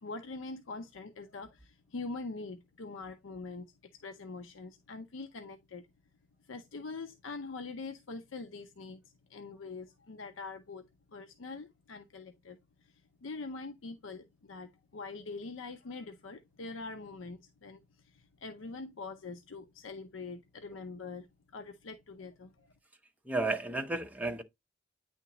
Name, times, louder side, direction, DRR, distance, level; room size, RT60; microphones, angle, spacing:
voice 1, 0.0-5.9 6.4-22.7, left 3 dB, 85° left, 0.6 m, -44 dB
voice 2, 23.3-24.4, right 2 dB, 10° right, 0.8 m, -32 dB
9.1 x 3.6 x 2.9 m
head